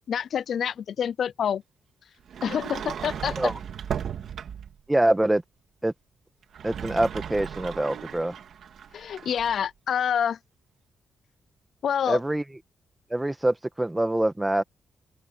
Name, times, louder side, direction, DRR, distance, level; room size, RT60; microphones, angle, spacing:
voice 1, 0.0-1.6 2.4-3.5 8.9-10.4 11.8-12.2, left 8 dB, 60° left, 0.4 m, -27 dB
Sliding door, 2.3-4.8 6.4-9.6, right 8 dB, 65° right, 2.5 m, -36 dB
voice 2, 4.9-5.4 5.8-5.9 6.6-8.3 12.1-12.4 13.1-14.6, right 1 dB, 10° right, 1.3 m, -24 dB
open air
cardioid pair, 120°, 0 cm